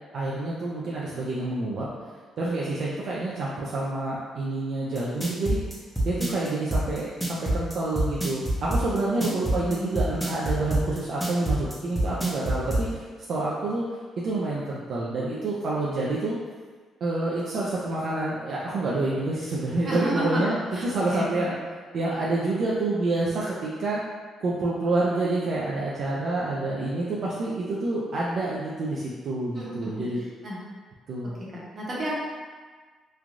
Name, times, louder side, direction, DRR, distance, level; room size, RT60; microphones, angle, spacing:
voice 1, 0.1-1.9 2.4-5.6 6.0-13.0 13.3-13.8 14.2-16.4 17.0-21.6 21.9-24.0 24.4-30.2 31.1-31.4, right 2 dB, 60° right, -6 dB, 0.4 m, -28 dB
sound 1, 5.0-12.8, right 1 dB, ahead, 0.7 m, -26 dB
voice 2, 9.1-9.9 19.8-21.2 29.5-30.0 30.4-30.6 31.2-31.3 31.7-32.2, equal, 35° right, -6 dB, 0.9 m, -32 dB
3.1 x 2.3 x 2.5 m, 1.5 s
cardioid pair, 90°, 0 cm